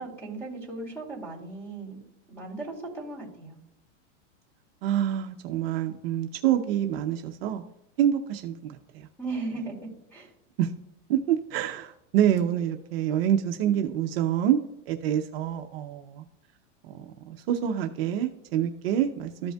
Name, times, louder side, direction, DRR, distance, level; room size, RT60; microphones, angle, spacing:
voice 1, 0.0-2.0 2.3-3.6 9.2-9.7 10.1-10.3, right 3 dB, 5° left, -1 dB, 2.3 m, -36 dB
voice 2, 4.8-7.6 8.0-9.1 10.6-10.7 11.1-14.6 14.9-16.2 16.9-19.5, right 10 dB, 50° right, 5 dB, 0.7 m, -27 dB
14.0 x 5.3 x 2.3 m, 0.83 s
supercardioid pair, 170°, 38 cm